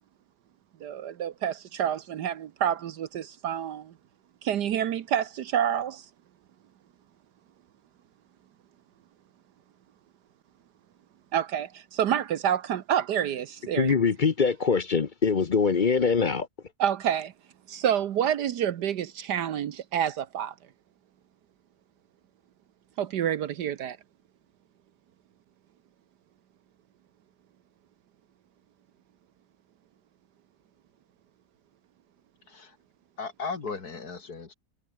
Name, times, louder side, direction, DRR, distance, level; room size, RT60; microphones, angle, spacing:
voice 1, 0.8-3.9 4.4-6.1 11.3-13.9 16.8-17.3 17.7-20.5 23.0-24.0, right 9 dB, 75° right, 1.5 m, -28 dB
voice 2, 13.7-16.5, left 5 dB, 40° left, 0.7 m, -23 dB
voice 3, 33.2-34.5, left 4 dB, 60° left, 3.1 m, -36 dB
omnidirectional pair, 1.8 m